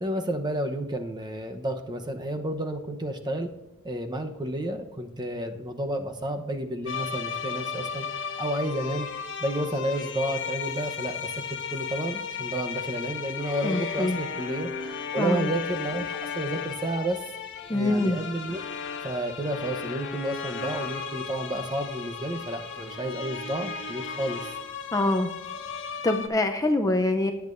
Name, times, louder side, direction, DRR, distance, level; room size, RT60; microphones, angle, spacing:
voice 1, 0.0-3.5 3.8-8.1 8.4-9.1 9.4-14.7 15.1-17.2 17.7-18.6 19.0-24.4, right 1 dB, 20° right, 5 dB, 0.9 m, -31 dB
sound 1, 6.9-26.3, left 6 dB, 55° left, 1.3 m, -35 dB
voice 2, 13.6-14.2 15.2-15.5 17.7-18.2 24.9-25.3 26.0-27.3, left 2 dB, 15° left, 5 dB, 0.6 m, -24 dB
19.5 x 8.4 x 2.6 m, 1.0 s
head